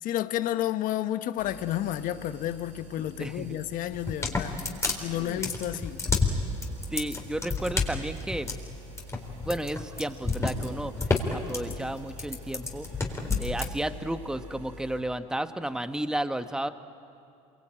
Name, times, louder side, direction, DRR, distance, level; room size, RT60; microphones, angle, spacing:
voice 1, 0.0-4.6 5.0-6.0, left 12 dB, 55° left, 1.1 m, -31 dB
sound 1, 1.4-15.0, left 1 dB, 90° right, 4.8 m, -47 dB
voice 2, 3.2-3.6 5.2-5.4 6.9-8.5 9.4-10.9 11.3-12.9 13.4-16.7, right 1 dB, 5° right, 1.2 m, -32 dB
sound 2, 3.9-13.7, left 3 dB, 15° left, 4.1 m, -29 dB
27.0 x 24.0 x 9.0 m
hypercardioid pair, 80°, 17 cm